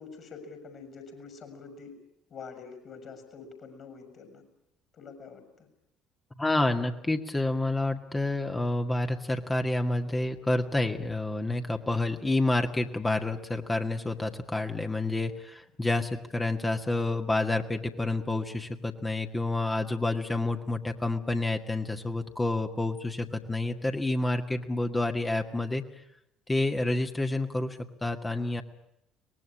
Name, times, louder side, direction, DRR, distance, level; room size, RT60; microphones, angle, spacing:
voice 1, 0.0-1.9 2.3-4.4 4.9-5.7, left 5 dB, 45° left, 7 dB, 6.2 m, -46 dB
voice 2, 6.4-25.8 26.5-28.6, left 2 dB, 15° left, 5 dB, 2.0 m, -29 dB
24.0 x 20.0 x 9.9 m, 0.81 s
figure-of-eight pair, 55°, 0 cm